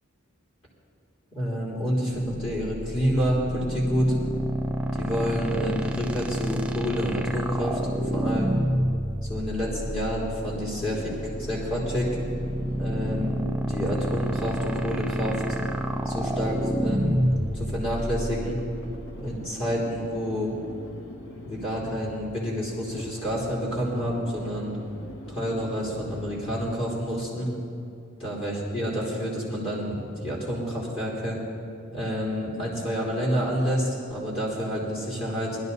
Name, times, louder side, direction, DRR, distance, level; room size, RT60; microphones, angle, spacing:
voice 1, 1.3-4.1 4.9-7.8 8.1-8.6 9.2-11.1 11.4-12.1 12.7-13.4 13.7-15.4 16.0-17.2 17.5-18.6 19.2-20.5 21.4-24.7 25.3-27.5 28.2-31.4 31.9-35.6, equal, 30° left, -5 dB, 3.5 m, -28 dB
sound 1, 2.3-19.3, right 1 dB, 5° right, 0.6 m, -29 dB
sound 2, 9.3-26.9, left 1 dB, 80° left, 1.9 m, -43 dB
20.5 x 12.0 x 4.1 m, 2.6 s
head